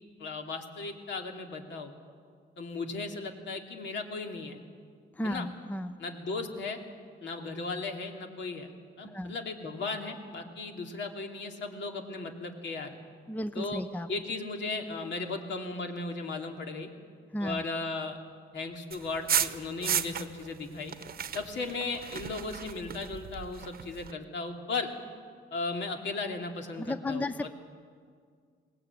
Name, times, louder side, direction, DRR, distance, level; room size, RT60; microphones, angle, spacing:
voice 1, 0.2-1.9 2.6-4.6 5.2-5.5 6.0-6.8 7.2-8.7 9.0-13.0 13.5-13.8 14.1-16.9 17.4-18.2 18.5-20.9 21.3-24.9 25.5-27.5, left 3 dB, 65° left, 3 dB, 2.8 m, -36 dB
voice 2, 5.1-6.0 9.0-9.4 13.3-14.1 17.3-17.7 26.8-27.5, left 1 dB, 10° left, 12 dB, 0.6 m, -34 dB
sound 1, 18.9-20.5 20.8-24.1, right 8 dB, 50° right, 1.0 m, -34 dB
21.0 x 18.0 x 9.2 m, 2.1 s
cardioid pair, 90°, 20 cm